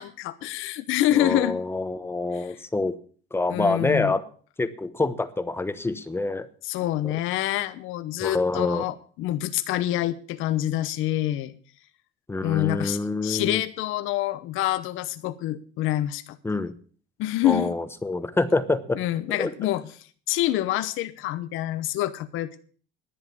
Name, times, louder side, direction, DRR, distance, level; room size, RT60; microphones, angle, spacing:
voice 1, 0.0-1.6 2.3-2.5 3.5-4.1 6.6-11.5 12.4-16.4 17.2-17.8 19.0-19.8 20.3-22.6, left 14 dB, 75° left, 11 dB, 1.0 m, -26 dB
voice 2, 1.1-3.0 3.3-4.2 4.6-6.5 7.0-7.1 8.2-8.8 12.3-13.6 16.4-16.7 17.4-19.0 19.4-19.5, left 2 dB, 10° left, 11 dB, 1.0 m, -26 dB
11.0 x 9.7 x 7.0 m, 0.44 s
cardioid pair, 130°, 21 cm